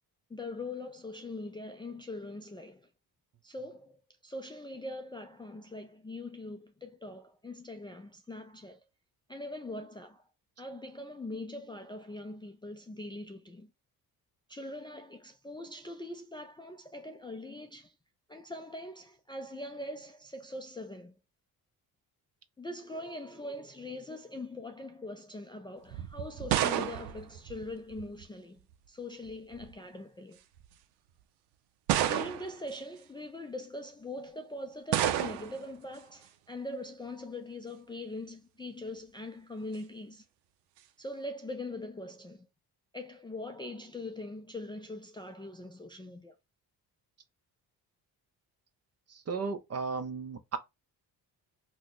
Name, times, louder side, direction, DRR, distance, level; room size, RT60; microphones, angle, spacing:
voice 1, 0.3-2.9 3.4-4.0 4.2-8.8 9.3-10.2 10.6-13.7 14.5-17.9 18.3-21.1 22.6-28.6 28.9-30.4 32.0-40.2 41.0-42.5 42.9-46.3, left 2 dB, 15° left, 0.3 m, -42 dB
sound 1, 25.9-28.2 29.3-29.7 30.6-30.7 31.9-32.7 34.9-35.7, right 11 dB, 90° right, 0.5 m, -30 dB
voice 2, 49.1-50.6, right 4 dB, 40° right, 0.6 m, -35 dB
2.9 x 2.2 x 3.9 m
cardioid pair, 80°, 39 cm